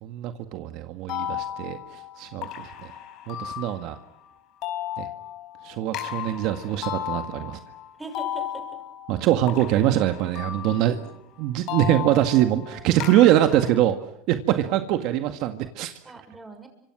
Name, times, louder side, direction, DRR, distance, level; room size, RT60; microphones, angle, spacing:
voice 1, 0.0-2.9 3.3-4.0 5.0-5.1 5.6-7.6 9.1-11.1 11.4-14.0 14.3-15.9, right 13 dB, 60° right, 8 dB, 1.8 m, -23 dB
sound 1, 1.1-4.3 4.6-11.1 11.7-13.8, left 11 dB, 55° left, 5.0 m, -35 dB
voice 2, 8.0-8.8 14.5-14.8 16.1-16.7, right 2 dB, 10° right, 5 dB, 6.9 m, -41 dB
30.0 x 26.5 x 6.3 m, 0.71 s
supercardioid pair, 125°, 0 cm